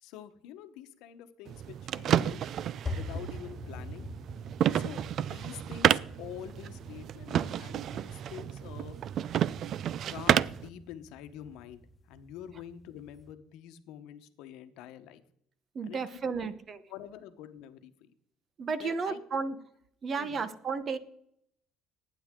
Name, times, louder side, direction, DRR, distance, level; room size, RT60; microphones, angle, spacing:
voice 1, 0.0-2.4 2.9-4.1 4.7-9.0 10.1-11.8 12.1-15.2 15.9-16.5 16.9-18.1 18.8-19.2 20.2-20.5, left 10 dB, 80° left, 1.0 m, -46 dB
sound 1, 1.5-10.7, right 10 dB, 55° right, 0.3 m, -31 dB
sound 2, 1.9-13.3, left 2 dB, 25° left, 1.5 m, -45 dB
voice 2, 15.7-16.8 18.6-19.6 20.0-21.0, right 5 dB, 40° right, 0.9 m, -33 dB
18.0 x 9.5 x 3.7 m
cardioid pair, 115°, 0 cm